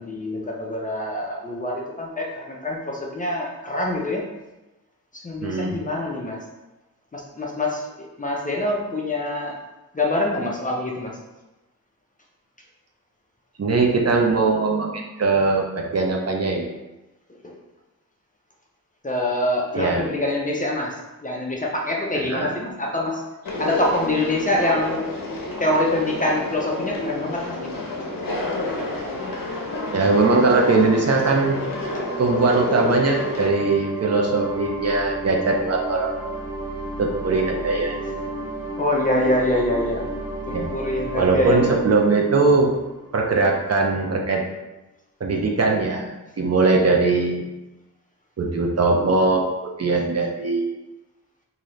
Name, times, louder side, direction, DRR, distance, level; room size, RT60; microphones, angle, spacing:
voice 1, 0.0-4.2 5.1-6.4 7.1-9.6 9.9-11.2 17.4-17.6 19.0-23.2 23.6-25.1 25.6-27.9 38.8-40.1 40.5-41.8, left 1 dB, 25° left, -2 dB, 0.5 m, -25 dB
voice 2, 5.4-5.8 13.6-14.9 15.2-16.7 19.7-20.1 22.3-22.5 29.9-31.6 32.2-36.1 37.0-37.9 40.5-40.7 41.1-42.7 43.1-44.4 45.2-47.5 48.4-50.7, right 3 dB, 45° right, 0 dB, 0.5 m, -20 dB
Conversation, 23.5-33.5, left 2 dB, 65° left, 0.8 m, -29 dB
sound 1, 29.1-43.5, right 1 dB, 20° right, 1.5 m, -33 dB
3.9 x 2.7 x 3.1 m, 1.0 s
wide cardioid pair, 150°, 35 cm